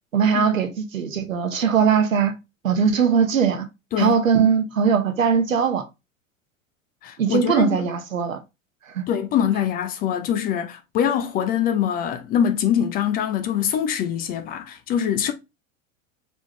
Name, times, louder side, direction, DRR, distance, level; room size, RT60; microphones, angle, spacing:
voice 1, 0.1-2.3 2.6-3.7 4.0-5.9 7.2-8.4 8.9-9.1, right 6 dB, 75° right, 0.9 m, -20 dB
voice 2, 7.0-7.9 9.1-15.3, left 9 dB, 25° left, 0.4 m, -23 dB
4.1 x 3.5 x 3.1 m
figure-of-eight pair, 80°, 40 cm